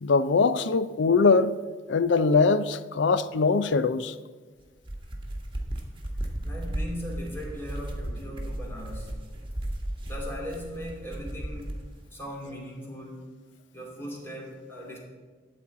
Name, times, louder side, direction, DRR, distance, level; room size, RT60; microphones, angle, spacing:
voice 1, 0.0-1.6 1.9-4.1, left 4 dB, 90° left, 0.5 m, -22 dB
sound 1, 4.7-11.9, right 1 dB, 30° right, 1.5 m, -35 dB
voice 2, 6.4-9.2 10.1-11.7 12.1-13.3 13.7-15.0, equal, 15° left, 2.6 m, -39 dB
12.5 x 4.3 x 8.4 m
head